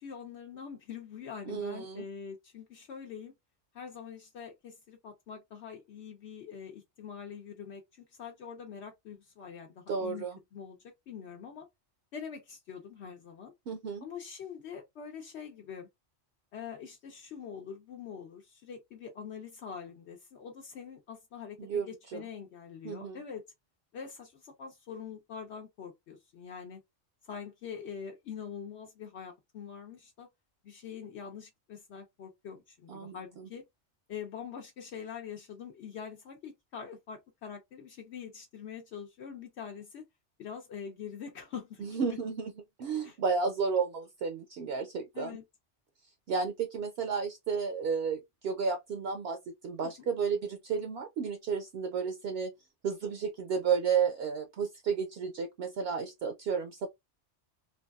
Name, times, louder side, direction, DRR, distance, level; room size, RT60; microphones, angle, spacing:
voice 1, 0.0-3.3 3.7-10.2 10.5-11.7 12.1-13.5 14.0-15.9 16.5-23.4 23.9-26.8 27.2-30.3 30.6-33.6 34.1-40.0 40.4-42.2 43.0-43.2 45.1-45.4 49.8-50.1, left 7 dB, 70° left, 0.9 m, -44 dB
voice 2, 1.5-2.0 9.9-10.4 13.7-14.1 21.6-22.2 22.8-23.2 32.9-33.5 41.8-42.5 42.8-45.4 46.3-52.5 52.8-56.9, right 6 dB, 65° right, 0.7 m, -32 dB
3.2 x 2.3 x 2.3 m
omnidirectional pair, 1.2 m